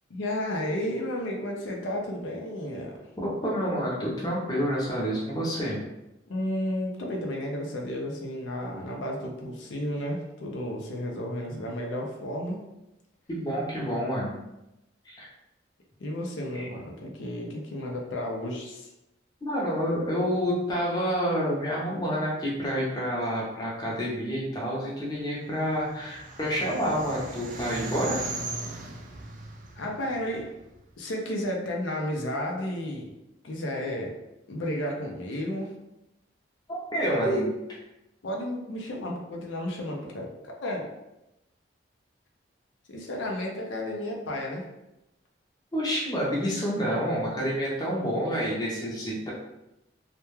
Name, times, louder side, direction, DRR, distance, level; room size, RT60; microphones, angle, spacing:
voice 1, 0.1-3.1 6.3-12.6 16.0-18.9 29.8-30.5 31.0-33.1 33.4-34.1 34.5-35.7 37.1-37.5 38.2-40.9 42.9-44.7, left 1 dB, 80° left, 0 dB, 0.5 m, -32 dB
voice 2, 3.2-5.8 13.3-14.4 15.1-15.3 16.5-16.7 19.4-28.3 36.7-37.5 45.7-49.3, equal, 20° left, -5 dB, 0.5 m, -28 dB
sound 1, 25.4-30.8, right 2 dB, 40° right, 0.3 m, -38 dB
2.2 x 2.1 x 3.0 m, 0.92 s
head